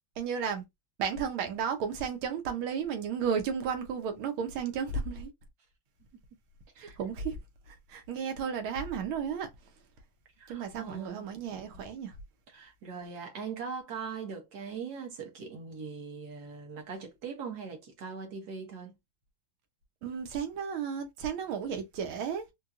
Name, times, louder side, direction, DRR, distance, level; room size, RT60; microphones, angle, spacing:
voice 1, 0.2-0.6 1.0-5.3 6.8-7.4 7.9-9.5 10.5-12.1 20.0-22.4, right 6 dB, 75° right, 1.6 m, -33 dB
voice 2, 10.4-11.3 12.5-18.9, right 5 dB, 55° right, 1.5 m, -41 dB
4.4 x 2.3 x 2.4 m
omnidirectional pair, 2.4 m